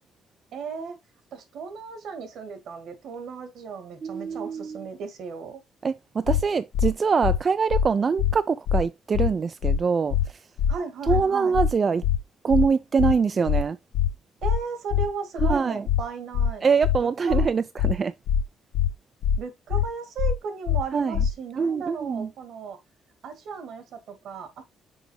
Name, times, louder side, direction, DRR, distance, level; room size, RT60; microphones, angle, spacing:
voice 1, 0.5-1.0 1.3-5.6 10.7-11.6 14.4-16.6 17.0-17.5 19.4-22.8 23.2-24.6, right 5 dB, 75° right, 1.8 m, -36 dB
voice 2, 4.0-4.8 5.8-10.4 11.1-12.0 12.4-13.8 15.4-15.8 16.6-18.1 20.9-21.2 21.6-22.3, right 5 dB, 40° right, 0.4 m, -24 dB
sound 1, 6.3-6.4 6.7-6.9 7.2-7.4 7.7-7.9 8.2-8.3 8.7-8.8 9.1-9.3 9.6-9.8 10.1-10.3 10.6-10.7 11.1-11.2 11.5-11.7 12.0-12.2 12.5-12.7 13.0-13.1 13.5-13.6 13.9-14.1 14.4-14.6 14.9-15.1 15.4-15.5 15.9-16.0 16.3-16.5 16.8-17.0 17.3-17.5 17.8-17.9 18.3-18.4 18.7-18.9 19.2-19.4 19.7-19.9 20.2-20.3 20.7-20.8 21.1-21.3, left 9 dB, 85° left, 0.4 m, -22 dB
6.2 x 4.9 x 3.1 m
cardioid pair, 90°, 0 cm